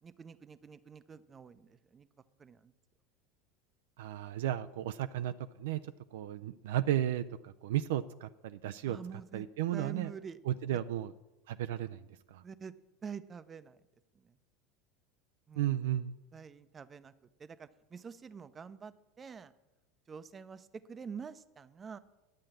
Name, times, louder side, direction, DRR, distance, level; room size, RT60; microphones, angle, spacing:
voice 1, 0.0-2.1 2.4-2.7 8.9-9.5 9.7-10.4 10.7-10.8 12.4-12.7 13.0-13.8 14.1-14.4 15.5-15.8 16.3-17.1 17.4-19.5 20.1-22.0, right 6 dB, 25° right, 15 dB, 0.6 m, -47 dB
voice 2, 4.0-5.3 5.6-5.8 6.1-9.0 9.3-10.1 10.5-11.1 11.5-12.0 12.3-12.4 15.6-16.1, right 12 dB, 65° right, 11 dB, 0.3 m, -34 dB
10.5 x 7.5 x 7.4 m, 1.0 s
figure-of-eight pair, 75°, 0 cm